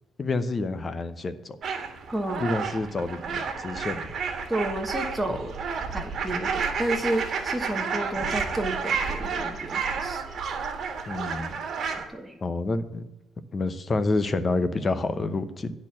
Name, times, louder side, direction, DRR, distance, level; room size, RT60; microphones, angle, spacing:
voice 1, 0.2-1.6 2.4-4.0 11.1-11.6 12.4-13.1 13.5-15.7, left 3 dB, 30° left, 12 dB, 0.8 m, -28 dB
sound 1, 1.6-12.1, right 5 dB, 55° right, 1.6 m, -31 dB
voice 2, 2.1-2.4 4.5-5.6 5.9-10.2 12.1-12.4, right 1 dB, 5° right, 2 dB, 1.2 m, -31 dB
10.5 x 4.5 x 7.4 m, 0.94 s
cardioid pair, 110°, 0 cm